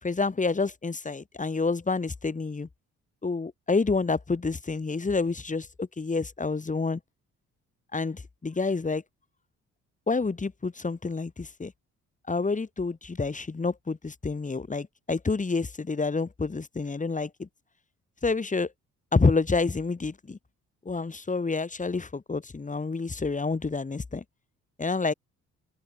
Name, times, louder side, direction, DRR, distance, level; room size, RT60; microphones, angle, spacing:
voice 1, 0.0-2.7 3.2-7.0 7.9-9.0 10.1-11.7 12.3-17.5 18.2-18.7 19.1-20.4 20.9-24.2 24.8-25.1, left 4 dB, 25° left, 4.1 m, -28 dB
open air
cardioid pair, 90°, 30 cm